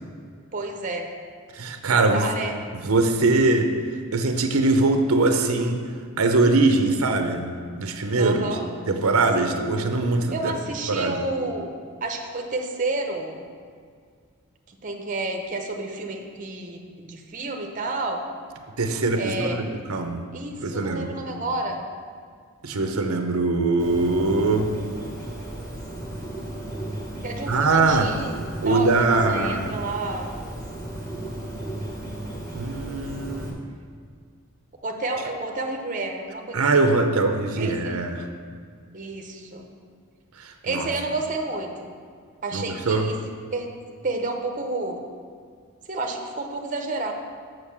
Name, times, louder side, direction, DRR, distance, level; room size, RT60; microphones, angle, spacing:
voice 1, 0.5-1.1 1.8-2.5 8.2-8.7 9.3-9.6 10.3-11.7 12.0-13.4 14.8-18.2 19.1-19.6 20.3-21.8 27.2-28.3 28.6-30.3 34.8-36.8 37.6-38.0 38.9-39.6 40.6-41.9 42.4-43.1 43.5-43.7 44.0-45.1 45.9-47.1, right 2 dB, 35° right, 2 dB, 0.8 m, -30 dB
voice 2, 1.5-2.2 2.7-3.7 4.1-5.8 6.2-8.5 8.9-10.5 10.9-11.2 18.8-19.6 19.9-20.3 20.6-21.1 22.6-24.7 27.5-28.1 28.6-29.7 32.5-33.6 36.5-38.3 40.4-40.9 42.5-43.1, right 3 dB, 85° right, 6 dB, 0.7 m, -22 dB
Bird, 23.8-33.5, right 1 dB, 15° left, 1.1 m, -34 dB
6.6 x 6.3 x 7.2 m, 2.1 s
head